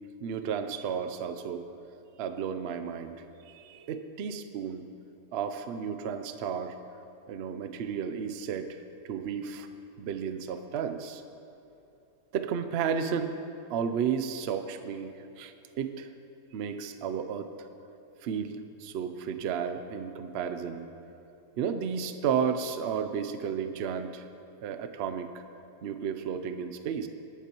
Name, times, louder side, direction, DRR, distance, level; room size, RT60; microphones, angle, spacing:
voice 1, 0.2-1.6 2.2-4.9 5.3-6.8 7.3-8.8 9.0-9.7 10.0-11.2 12.3-13.3 13.7-16.1 16.5-17.7 18.2-20.9 21.6-24.2 24.6-25.4 25.8-27.1, right 7 dB, 60° right, 9 dB, 0.7 m, -33 dB
19.5 x 8.3 x 3.0 m, 2.8 s
omnidirectional pair, 1.6 m